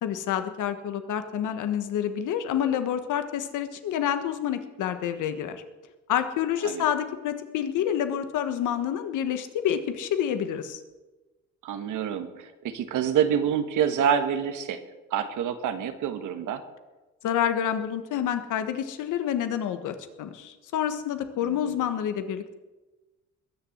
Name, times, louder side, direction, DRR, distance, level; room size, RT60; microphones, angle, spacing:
voice 1, 0.0-5.6 6.1-10.8 17.2-22.5, left 9 dB, 85° left, 9 dB, 1.5 m, -28 dB
voice 2, 11.6-14.8 15.1-16.6 21.4-21.8, right 8 dB, 85° right, 8 dB, 1.6 m, -27 dB
21.0 x 7.1 x 7.9 m, 1.2 s
cardioid pair, 90°, 30 cm